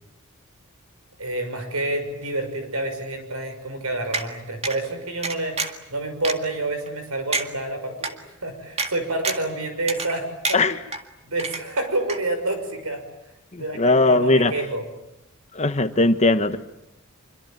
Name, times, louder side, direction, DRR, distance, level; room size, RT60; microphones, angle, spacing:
voice 1, 1.2-5.6 5.9-8.2 8.4-10.6 11.2-13.0 13.6-14.8, right 2 dB, 75° right, 6.5 m, -28 dB
sound 1, 4.1-4.3 4.6-4.8 5.2-5.8 6.2-6.4 6.9-7.0 7.3-7.5 8.0-8.1 8.8-8.9 9.2-9.5 9.9-10.2 10.4-11.0 11.4-11.8 12.1-12.2, right 4 dB, 30° right, 2.0 m, -27 dB
voice 2, 13.5-14.5 15.5-16.6, left 2 dB, 30° left, 1.1 m, -19 dB
26.0 x 24.0 x 9.1 m
head